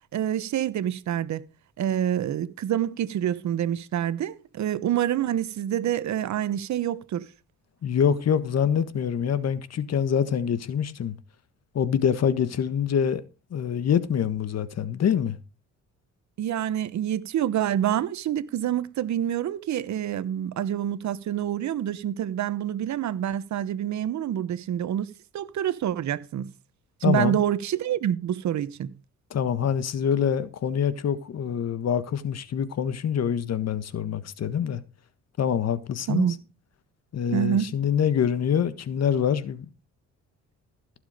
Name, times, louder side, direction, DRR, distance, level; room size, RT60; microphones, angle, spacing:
voice 1, 0.1-1.4 1.8-7.3 16.4-25.1 25.3-26.5 27.0-28.9 36.1-36.3 37.3-37.7, right 10 dB, 65° right, 1.1 m, -27 dB
voice 2, 7.8-11.2 11.7-13.2 13.5-15.4 27.0-27.4 29.3-34.8 35.4-36.2 37.1-39.6, left 8 dB, 55° left, 1.5 m, -25 dB
16.0 x 7.2 x 5.1 m
cardioid pair, 90°, 30 cm